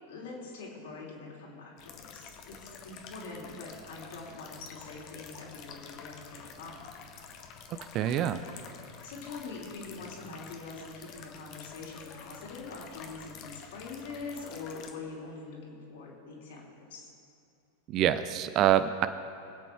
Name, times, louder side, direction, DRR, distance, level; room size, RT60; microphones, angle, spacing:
voice 1, 0.1-6.9 9.0-17.1, left 3 dB, 60° left, -3 dB, 3.2 m, -44 dB
sound 1, 1.8-14.9, left 6 dB, 40° left, 1.2 m, -49 dB
voice 2, 7.9-8.4 17.9-19.1, right 11 dB, 35° right, 12 dB, 0.5 m, -25 dB
23.5 x 8.5 x 3.4 m, 2.6 s
figure-of-eight pair, 90°, 0 cm